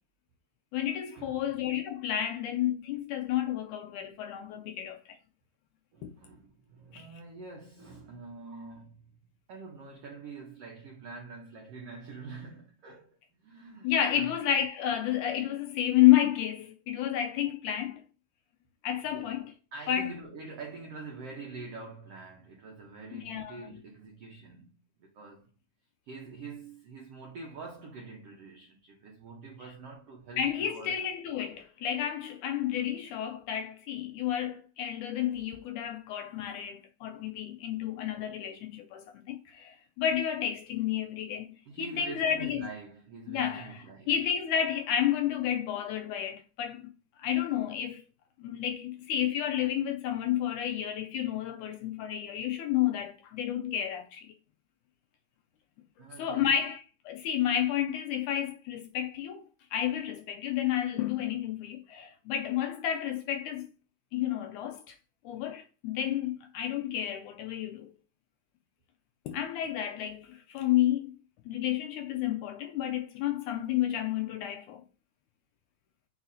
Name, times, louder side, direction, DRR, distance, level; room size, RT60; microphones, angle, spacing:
voice 1, 0.7-5.2 6.0-6.1 6.9-7.1 13.8-18.0 18.8-19.5 19.9-20.1 23.1-23.8 30.4-42.7 43.3-46.9 47.2-48.0 48.4-54.3 56.2-59.4 59.7-63.7 64.1-65.0 65.2-67.9 69.3-71.1 71.5-74.8, left 11 dB, 80° left, 1.9 m, -30 dB
voice 2, 5.9-9.1 9.5-14.3 19.0-19.4 19.7-25.5 26.0-31.0 41.7-44.1 56.0-56.5, right 4 dB, 70° right, 1.5 m, -45 dB
8.2 x 4.7 x 2.7 m
omnidirectional pair, 4.0 m